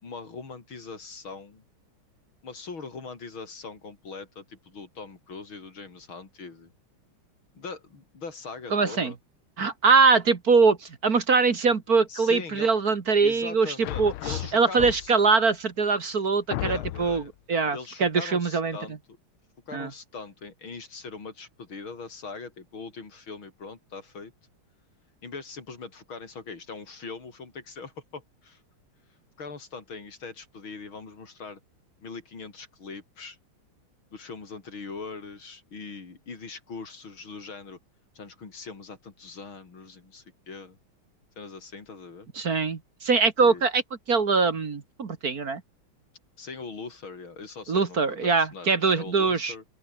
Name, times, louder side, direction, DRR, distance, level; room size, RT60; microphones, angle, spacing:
voice 1, 0.0-1.6 2.4-6.7 7.5-9.2 12.1-12.7 13.2-15.1 16.6-17.3 17.7-19.0 19.7-24.3 25.2-28.6 29.4-31.6 32.0-33.4 34.1-37.8 38.1-40.8 41.4-42.3 43.4-43.6 46.4-49.6, left 4 dB, 70° left, 4.6 m, -41 dB
voice 2, 8.7-9.1 9.6-17.2 17.5-18.8 19.7-19.9 42.4-43.8 44.1-45.6 47.7-49.5, right 4 dB, 45° right, 2.2 m, -23 dB
sound 1, 13.8-15.3 16.0-16.1 16.5-17.3, left 15 dB, 85° left, 1.6 m, -33 dB
open air
omnidirectional pair, 2.3 m